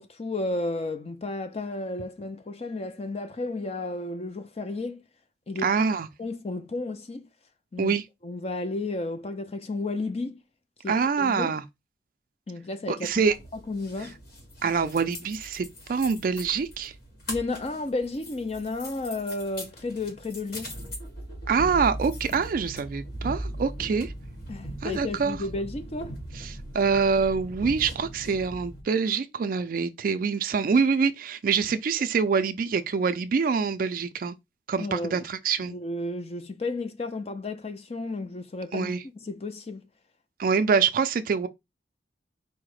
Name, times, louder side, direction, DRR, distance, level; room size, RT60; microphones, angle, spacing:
voice 1, 0.0-5.0 5.5-5.7 6.2-7.2 7.7-7.9 8.2-10.4 10.8-11.6 12.5-13.3 13.5-14.2 17.3-20.8 24.5-26.2 34.8-35.2 35.7-38.9 39.2-39.8, left 2 dB, 35° left, 0.5 m, -32 dB
voice 2, 5.6-6.1 7.8-8.0 10.9-11.6 12.9-13.3 14.6-16.9 21.5-24.1 24.8-25.4 26.4-34.3 34.7-35.7 38.7-39.0 40.4-41.5, right 5 dB, 50° right, 0.4 m, -25 dB
sound 1, 13.0-28.8, equal, 60° left, 1.7 m, -39 dB
4.8 x 2.1 x 4.7 m
head